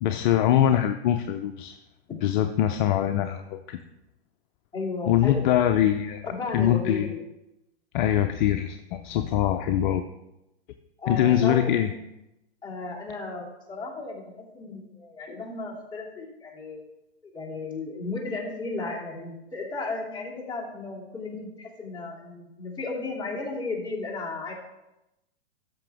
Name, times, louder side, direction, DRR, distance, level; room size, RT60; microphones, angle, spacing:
voice 1, 0.0-1.8 2.2-3.8 5.1-7.1 7.9-10.0 11.1-11.9, left 11 dB, 45° left, 7 dB, 0.6 m, -23 dB
voice 2, 4.7-5.4 6.3-7.2 11.0-11.6 12.6-16.8 17.2-24.5, left 3 dB, 15° left, -5 dB, 2.8 m, -34 dB
13.0 x 5.9 x 3.5 m, 0.90 s
hypercardioid pair, 125°, 33 cm